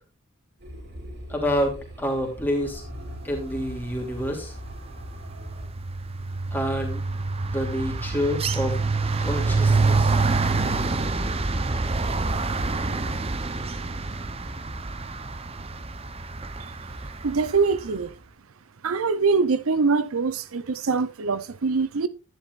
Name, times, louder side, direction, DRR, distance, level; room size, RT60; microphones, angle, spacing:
sound 1, 0.6-5.7, equal, 55° right, 3.5 m, -40 dB
voice 1, 1.3-2.8 3.2-4.5 6.5-7.0 7.5-8.8 9.2-10.2, equal, 10° left, 2.8 m, -28 dB
sound 2, 3.7-4.1 4.4-17.5, right 3 dB, 30° right, 0.7 m, -26 dB
voice 2, 17.2-18.1 18.8-22.1, right 4 dB, 80° right, 0.6 m, -23 dB
10.5 x 10.5 x 2.5 m
head